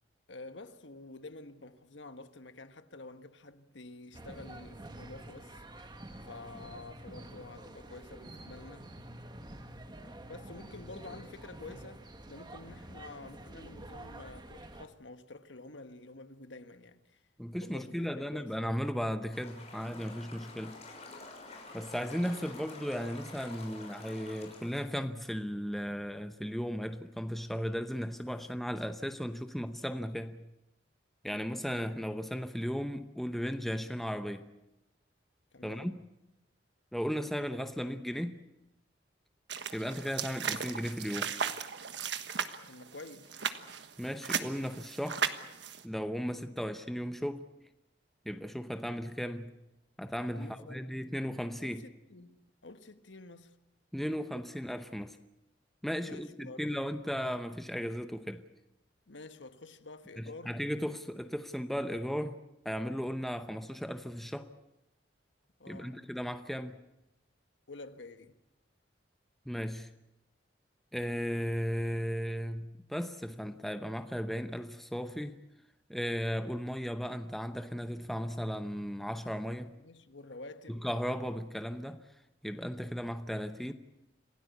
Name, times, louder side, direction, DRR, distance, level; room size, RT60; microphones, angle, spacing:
voice 1, 0.3-5.6 6.2-8.9 10.3-17.2 17.6-18.5 35.5-35.9 42.7-43.4 50.3-50.9 51.6-53.6 56.0-56.7 59.1-60.6 65.6-66.0 67.7-68.4 79.8-80.8, left 2 dB, 80° left, 1.4 m, -49 dB
sound 1, 4.1-14.9, right 1 dB, 25° right, 1.6 m, -48 dB
voice 2, 17.4-20.8 21.7-30.4 31.2-34.5 35.6-36.0 36.9-38.4 39.7-41.3 44.0-45.2 45.8-47.5 48.3-49.5 50.0-51.8 53.9-55.2 55.8-58.4 60.2-62.4 62.6-64.5 65.7-66.8 69.5-69.9 70.9-75.4 75.9-79.7 80.7-82.0 82.4-83.7, equal, ahead, 0.8 m, -36 dB
sound 2, 19.3-24.8, left 3 dB, 35° left, 6.4 m, -49 dB
sound 3, 39.5-45.8, right 6 dB, 70° right, 1.4 m, -36 dB
27.0 x 17.0 x 8.3 m
head